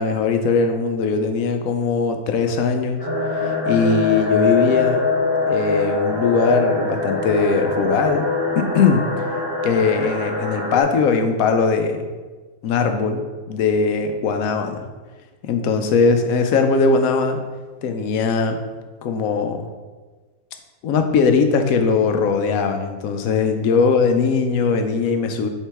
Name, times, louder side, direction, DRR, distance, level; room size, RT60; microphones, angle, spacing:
voice 1, 0.0-3.0 3.4-5.1 5.5-8.3 8.6-9.0 9.6-12.1 12.6-14.8 15.4-17.4 17.8-18.6 19.0-19.7 20.8-25.5, left 5 dB, 75° left, 6 dB, 1.1 m, -20 dB
sound 1, 3.0-10.8, left 3 dB, 15° left, 1.6 m, -23 dB
7.4 x 3.8 x 3.4 m, 1.3 s
omnidirectional pair, 1.5 m